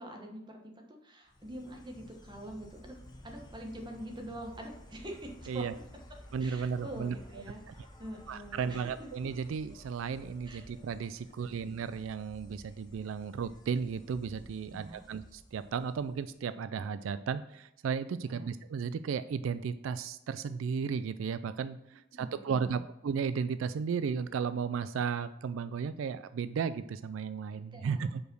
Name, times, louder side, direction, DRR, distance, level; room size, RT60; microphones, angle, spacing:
voice 1, 0.0-3.0 3.2-5.7 6.4-8.9 10.4-10.6 11.4-11.6 14.7-15.0 18.2-18.5 22.1-22.8 27.7-28.2, right 1 dB, 25° right, 2 dB, 1.2 m, -45 dB
Insect, 1.3-16.4, left 1 dB, 20° left, 0.9 m, -54 dB
voice 2, 6.3-7.2 8.3-21.8 22.2-28.2, right 6 dB, 90° right, 12 dB, 0.3 m, -34 dB
5.0 x 5.0 x 6.2 m, 0.86 s
head